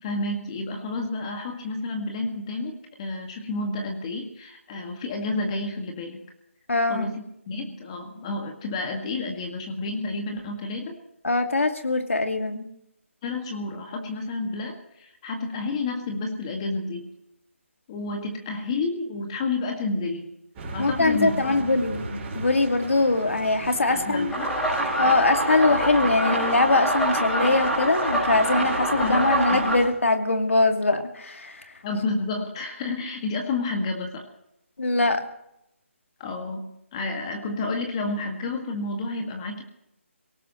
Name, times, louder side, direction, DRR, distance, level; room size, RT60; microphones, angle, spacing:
voice 1, 0.0-6.2 6.9-11.0 13.2-17.1 17.9-20.3 20.7-21.8 23.9-24.5 29.0-29.2 29.5-29.6 31.8-34.2 36.2-39.6, left 3 dB, 25° left, 3 dB, 2.0 m, -30 dB
voice 2, 6.7-7.1 11.2-12.7 20.8-24.3 25.0-31.7 34.8-35.2, left 2 dB, 75° left, 5 dB, 2.3 m, -22 dB
sound 1, 20.5-29.9, right 3 dB, 20° right, 5.7 m, -38 dB
sound 2, 24.3-29.8, right 1 dB, 5° left, 5.5 m, -25 dB
25.0 x 18.0 x 3.1 m, 0.81 s
figure-of-eight pair, 155°, 7 cm